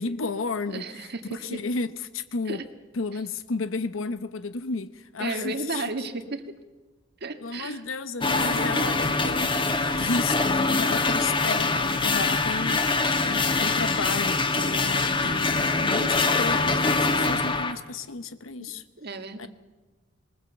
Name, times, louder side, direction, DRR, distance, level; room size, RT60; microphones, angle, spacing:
voice 1, 0.0-2.6 2.9-5.8 7.4-9.5 10.0-18.8 19.4-19.5, left 3 dB, 85° left, 0.9 m, -33 dB
voice 2, 0.7-1.6 2.4-2.6 5.2-6.4 7.2-7.8 8.3-9.0 18.6-19.5, right 2 dB, 55° right, 1.7 m, -34 dB
sound 1, 8.2-17.7, left 3 dB, 25° left, 1.3 m, -24 dB
21.0 x 20.5 x 7.9 m
head